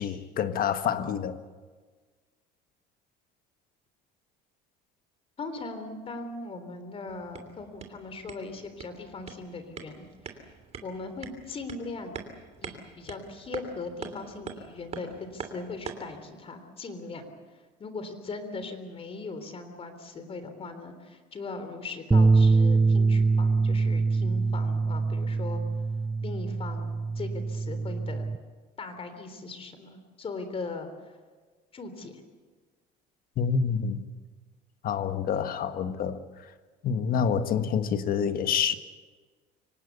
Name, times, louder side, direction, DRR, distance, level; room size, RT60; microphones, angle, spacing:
voice 1, 0.0-1.4 33.4-34.0 34.8-36.2 36.8-38.8, left 7 dB, 50° left, 10 dB, 1.5 m, -27 dB
voice 2, 5.4-10.5 10.8-12.2 12.6-25.6 26.2-28.3 28.8-31.2 31.7-32.2, left 3 dB, 30° left, 9 dB, 3.5 m, -39 dB
sound 1, 7.1-16.2, right 5 dB, 35° right, 3.0 m, -44 dB
sound 2, 22.1-28.4, right 4 dB, 10° right, 0.8 m, -24 dB
25.5 x 18.0 x 8.2 m, 1.4 s
cardioid pair, 130°, 19 cm